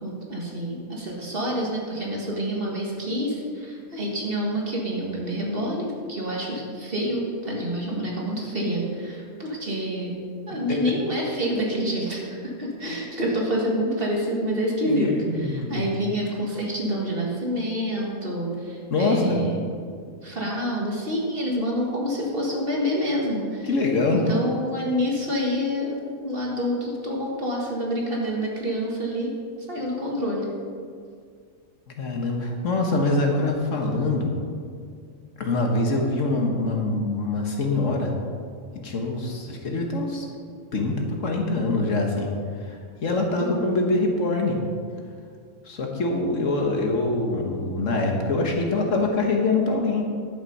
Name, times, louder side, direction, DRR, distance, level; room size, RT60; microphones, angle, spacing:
voice 1, 0.0-10.2 10.5-19.7 20.2-23.7 24.1-29.3 29.7-30.5 43.4-43.8, equal, 40° right, -2 dB, 1.9 m, -27 dB
voice 2, 14.9-15.9 18.9-19.4 23.6-24.2 32.0-34.3 35.4-38.1 38.7-40.3 40.7-40.9 41.2-42.3 42.6-44.6 45.6-50.0, left 2 dB, 60° left, 2 dB, 1.5 m, -24 dB
11.0 x 7.5 x 5.3 m, 2.2 s
omnidirectional pair, 1.6 m